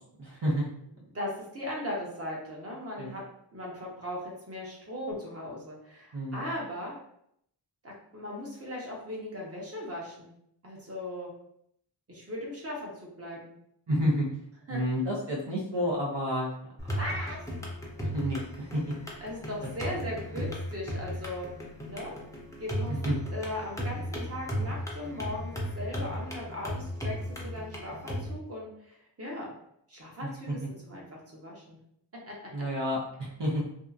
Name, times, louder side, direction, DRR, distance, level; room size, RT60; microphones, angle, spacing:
voice 1, 0.2-0.7 3.0-3.1 6.1-6.4 13.9-14.3 14.7-16.5 18.0-18.8 23.0-23.1 30.5-30.6 32.5-33.6, equal, 70° right, -4 dB, 0.7 m, -29 dB
voice 2, 1.1-3.2 3.5-6.9 7.8-10.3 10.6-11.3 12.1-13.6 14.7-14.8 17.0-17.4 19.2-21.5 21.8-22.1 22.6-23.0 23.3-29.5 29.9-31.0 31.3-31.8 32.3-32.7, left 1 dB, 30° right, -3 dB, 0.9 m, -38 dB
sound 1, 16.8-28.3, equal, 5° left, 0.6 m, -36 dB
2.7 x 2.4 x 2.4 m, 0.72 s
wide cardioid pair, 40°, 44 cm